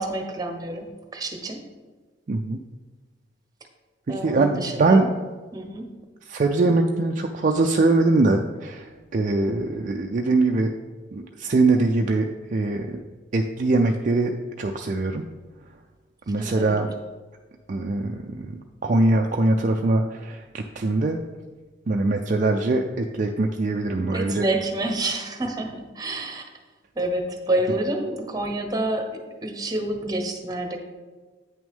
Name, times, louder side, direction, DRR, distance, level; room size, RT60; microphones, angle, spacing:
voice 1, 0.0-1.6 4.1-5.1 5.5-5.9 16.4-16.8 24.1-26.4 27.0-29.1 29.4-30.8, right 1 dB, 20° right, 4 dB, 0.9 m, -28 dB
voice 2, 2.3-2.6 4.1-5.1 6.3-10.7 11.1-13.0 13.3-14.3 14.6-15.2 16.3-16.9 17.7-21.2 21.9-24.5, right 2 dB, 40° right, 3 dB, 0.4 m, -22 dB
9.0 x 6.1 x 3.6 m, 1.3 s
head